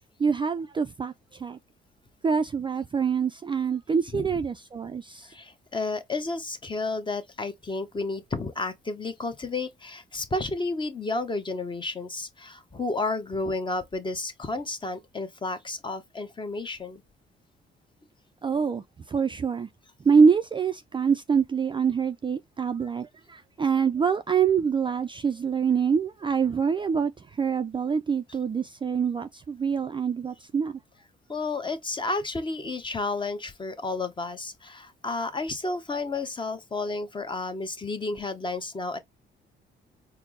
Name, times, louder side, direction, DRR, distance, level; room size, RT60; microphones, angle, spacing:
voice 1, 0.2-1.6 2.2-5.3 18.4-19.7 20.0-30.8, right 6 dB, 25° right, 0.3 m, -25 dB
voice 2, 5.3-17.0 31.3-39.0, left 3 dB, 25° left, 0.8 m, -31 dB
4.4 x 2.0 x 3.6 m
cardioid pair, 90°, 20 cm